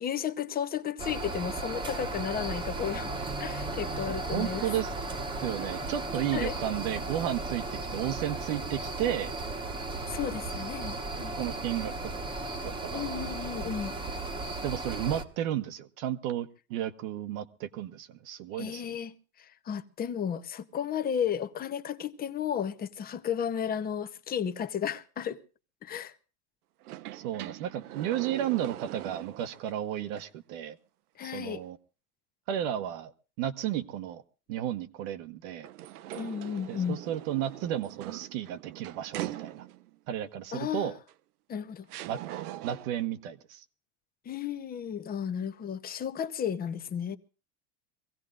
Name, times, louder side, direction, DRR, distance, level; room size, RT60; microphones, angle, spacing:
voice 1, 0.0-3.1 3.4-4.7 6.3-6.6 10.1-11.4 12.9-13.9 18.5-25.4 25.8-26.2 31.2-31.6 36.1-37.0 40.5-40.9 41.5-41.9 44.2-47.2, left 8 dB, 20° left, 0.8 m, -33 dB
sound 1, 1.0-15.2, right 2 dB, 10° right, 1.1 m, -35 dB
voice 2, 4.3-4.9 5.4-9.4 11.4-11.9 12.6-13.3 14.6-18.8 27.1-30.8 31.2-31.8 32.5-33.1 33.4-34.2 34.5-35.7 36.7-39.6 40.1-40.9 42.1-42.2 42.6-43.6, right 11 dB, 65° right, 1.1 m, -33 dB
sound 2, 26.8-29.7 30.2-30.3 35.6-40.0 41.1-41.2 41.9-43.1, right 14 dB, 85° right, 0.8 m, -42 dB
24.0 x 16.5 x 2.5 m
supercardioid pair, 130°, 44 cm